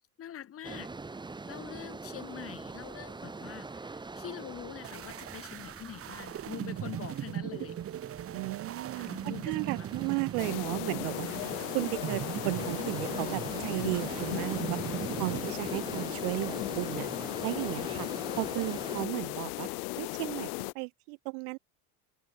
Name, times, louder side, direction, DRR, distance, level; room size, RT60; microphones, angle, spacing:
voice 1, 0.2-0.9 1.5-7.8 8.9-9.9, left 10 dB, 30° left, 1.3 m, -44 dB
sound 1, 0.6-19.0, right 3 dB, 10° right, 1.3 m, -44 dB
sound 2, 4.8-15.5, right 11 dB, 30° right, 1.1 m, -39 dB
voice 2, 8.3-14.8 15.2-18.1 18.4-19.7 20.0-21.6, right 34 dB, 65° right, 0.9 m, -35 dB
sound 3, 10.4-20.7, left 29 dB, 70° left, 0.6 m, -36 dB
supercardioid pair, 115°, 47 cm